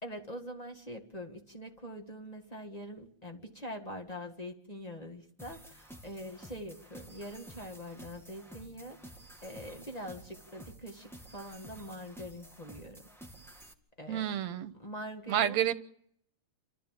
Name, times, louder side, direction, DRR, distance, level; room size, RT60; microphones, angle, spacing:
voice 1, 0.0-9.2 9.4-13.0 14.0-14.3 14.8-15.6, equal, 15° left, 4 dB, 1.5 m, -44 dB
sound 1, 5.4-13.7, right 1 dB, ahead, 1.4 m, -52 dB
voice 2, 14.1-14.7 15.3-15.7, right 10 dB, 70° right, 12 dB, 2.2 m, -29 dB
29.0 x 13.5 x 7.6 m, 0.68 s
omnidirectional pair, 3.4 m